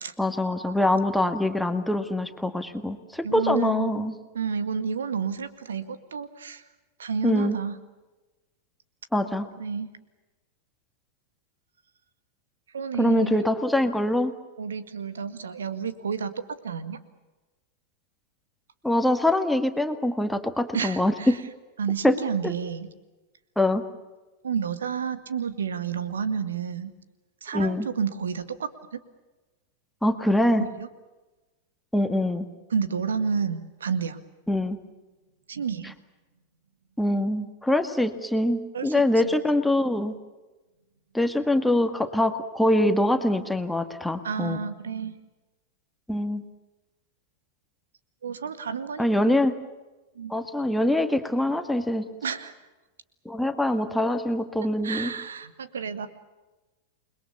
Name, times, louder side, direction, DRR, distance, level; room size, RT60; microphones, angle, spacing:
voice 1, 0.2-4.2 7.2-7.6 9.1-9.5 13.0-14.3 18.8-21.4 22.0-22.2 22.4-22.5 23.6-23.8 27.5-27.9 30.0-30.6 31.9-32.5 34.5-34.8 37.0-40.2 41.1-44.6 46.1-46.4 49.0-49.5 50.3-52.1 53.3-55.1, left 1 dB, 5° left, 7 dB, 1.8 m, -24 dB
voice 2, 3.2-6.6 7.0-7.7 9.6-9.9 12.7-13.4 14.6-16.3 16.6-17.0 20.7-21.4 21.8-22.9 24.4-26.9 27.4-29.0 30.8-30.9 32.7-34.2 35.5-35.9 38.7-39.3 44.2-45.2 48.2-49.4 50.2-50.3 52.2-52.5 54.8-56.1, right 6 dB, 65° right, 12 dB, 1.9 m, -30 dB
29.0 x 22.0 x 7.1 m, 1.1 s
figure-of-eight pair, 90°, 0 cm